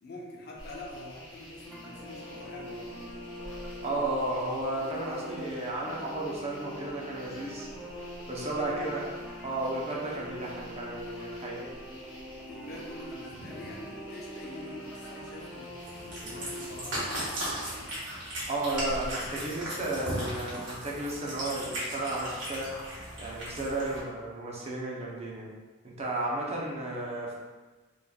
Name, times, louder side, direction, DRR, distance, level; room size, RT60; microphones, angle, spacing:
voice 1, 0.0-3.0 8.3-8.8 12.4-18.0 26.4-26.8, left 1 dB, 55° left, -2 dB, 0.6 m, -45 dB
sound 1, 0.6-19.4, left 1 dB, 80° left, 1.0 m, -49 dB
sound 2, 1.6-16.6, equal, 5° left, 1.3 m, -43 dB
voice 2, 3.8-7.7 8.3-9.1 9.4-11.6 18.5-22.7 23.2-25.5 25.8-27.3, right 2 dB, 35° right, -4 dB, 0.7 m, -33 dB
Cat, 15.8-24.0, right 1 dB, 75° right, 1.4 m, -37 dB
3.9 x 3.2 x 2.3 m, 1.3 s
head